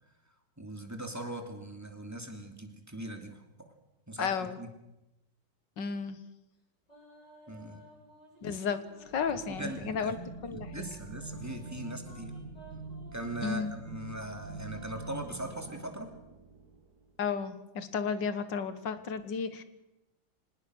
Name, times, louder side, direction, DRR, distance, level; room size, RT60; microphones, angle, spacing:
voice 1, 0.6-3.7 4.1-4.7 7.5-7.8 9.5-10.1 10.5-12.3 13.1-16.1, right 1 dB, 10° right, 5 dB, 2.6 m, -40 dB
voice 2, 4.2-4.6 5.8-6.2 8.4-8.8 9.1-10.2 10.4-10.7 13.4-13.8 17.2-19.6, left 6 dB, 65° left, 12 dB, 2.1 m, -33 dB
sound 1, 6.9-10.0 10.6-13.7 14.1-15.8, right 1 dB, 20° left, 8.2 m, -55 dB
sound 2, 9.0-17.3, right 3 dB, 55° right, 2.1 m, -45 dB
25.0 x 19.5 x 6.4 m, 0.94 s
omnidirectional pair, 2.1 m